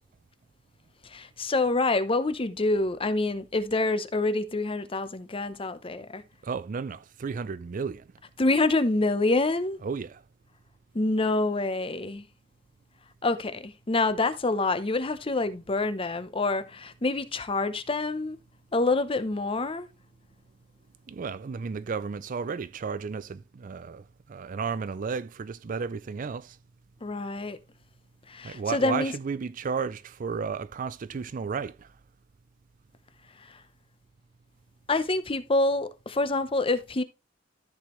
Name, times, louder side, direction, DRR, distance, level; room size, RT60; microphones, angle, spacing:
voice 1, 1.0-6.2 8.4-9.8 10.9-12.2 13.2-18.4 18.7-19.9 27.0-27.6 28.3-29.1 33.4-33.6 34.9-37.0, left 2 dB, 30° left, 0.7 m, -27 dB
voice 2, 6.4-8.1 9.8-10.2 21.1-26.6 28.4-32.0, right 5 dB, 45° right, 0.4 m, -33 dB
13.5 x 5.1 x 3.0 m
head